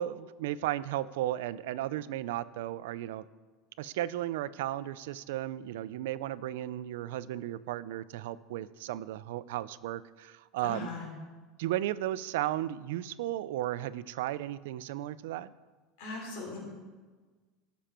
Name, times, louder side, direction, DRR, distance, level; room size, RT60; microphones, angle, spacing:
voice 1, 0.0-3.2 3.8-10.9 11.6-15.5, right 13 dB, 90° right, 17 dB, 0.5 m, -35 dB
voice 2, 10.6-11.0 16.0-16.6, left 3 dB, 65° left, -1 dB, 3.5 m, -39 dB
17.5 x 7.0 x 4.4 m, 1.4 s
cardioid pair, 165°, 0 cm